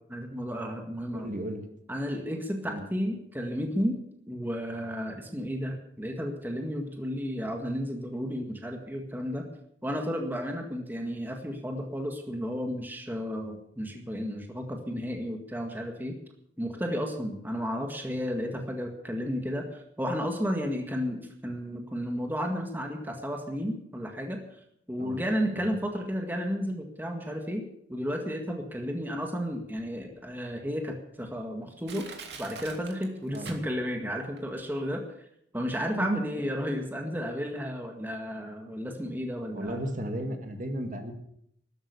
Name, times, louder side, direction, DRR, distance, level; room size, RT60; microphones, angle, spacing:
voice 1, 0.1-1.3 1.9-4.0 4.3-9.5 9.8-16.2 16.6-24.4 24.9-32.1 32.4-35.3 35.5-39.9, equal, 10° right, 3 dB, 1.8 m, -33 dB
voice 2, 1.1-1.6 2.6-2.8 25.0-25.2 25.5-25.7 33.3-33.6 35.9-36.2 36.5-36.6 39.5-41.1, right 1 dB, 45° right, 5 dB, 2.1 m, -34 dB
Crushing, 29.8-29.9 30.5-30.6 31.3-31.4 31.8-34.0 34.4-34.5, right 5 dB, 70° right, 2.7 m, -44 dB
13.0 x 12.5 x 7.0 m, 0.72 s
head